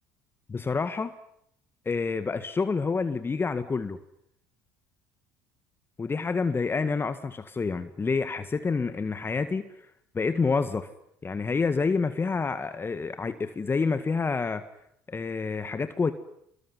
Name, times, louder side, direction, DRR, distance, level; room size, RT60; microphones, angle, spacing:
voice 1, 0.5-1.1 1.9-4.0 6.0-9.7 10.1-10.9 11.2-14.6 15.1-16.1, left 4 dB, 25° left, 11 dB, 1.8 m, -28 dB
26.5 x 22.5 x 9.7 m, 0.72 s
hypercardioid pair, 70°, 9 cm